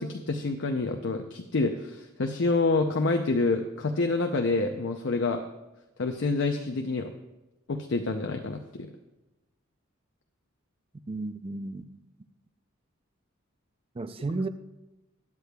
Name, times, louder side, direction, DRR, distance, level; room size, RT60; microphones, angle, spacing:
voice 1, 0.0-5.4 6.0-7.1 7.7-8.9, left 3 dB, 60° left, 4 dB, 0.6 m, -27 dB
voice 2, 11.1-12.0 13.9-14.5, right 2 dB, 25° right, 11 dB, 0.4 m, -33 dB
20.5 x 8.4 x 2.3 m, 1.0 s
head